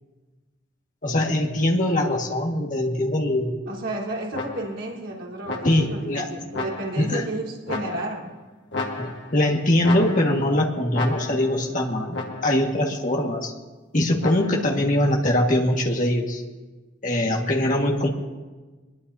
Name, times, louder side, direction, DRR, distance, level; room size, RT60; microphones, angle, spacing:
voice 1, 1.0-3.6 5.6-6.3 7.0-7.3 9.0-13.5 13.9-16.4 17.0-18.1, left 1 dB, 40° left, 0 dB, 1.9 m, -22 dB
voice 2, 3.7-8.3, right 1 dB, 80° right, -6 dB, 4.0 m, -32 dB
sound 1, 4.3-4.9 5.5-6.0 6.5-7.2 7.7-8.3 8.7-9.5 9.8-10.5 10.9-11.6 12.1-12.7 14.2-14.8, left 3 dB, 65° left, 1.6 m, -33 dB
23.5 x 21.5 x 2.8 m, 1.3 s
head